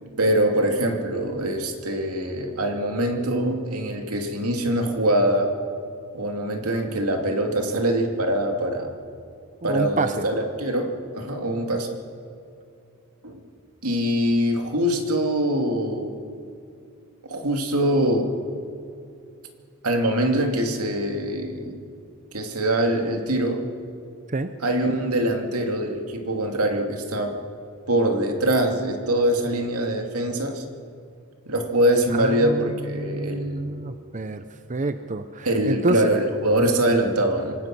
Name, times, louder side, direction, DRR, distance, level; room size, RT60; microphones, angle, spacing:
voice 1, 0.0-5.5 6.1-8.9 9.6-11.9 13.2-13.4 13.8-16.2 17.3-18.3 19.8-21.8 22.3-23.6 24.6-27.4 27.9-30.6 31.5-33.7 35.4-37.6, right 1 dB, 80° right, 4 dB, 2.6 m, -23 dB
voice 2, 9.6-10.3 24.3-24.5 32.1-34.4 34.7-36.0, right 2 dB, 35° right, 9 dB, 0.7 m, -27 dB
26.0 x 19.5 x 6.2 m, 2.6 s
head